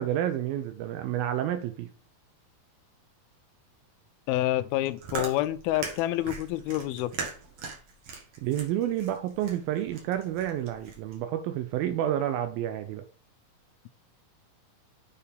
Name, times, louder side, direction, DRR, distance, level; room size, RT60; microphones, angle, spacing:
voice 1, 0.0-1.9 8.4-13.0, right 11 dB, 80° right, 2.4 m, -29 dB
voice 2, 4.3-7.1, left 14 dB, 85° left, 2.4 m, -28 dB
Chewing mastication, 4.7-11.2, right 4 dB, 55° right, 2.4 m, -40 dB
7.3 x 4.5 x 5.2 m
omnidirectional pair, 4.3 m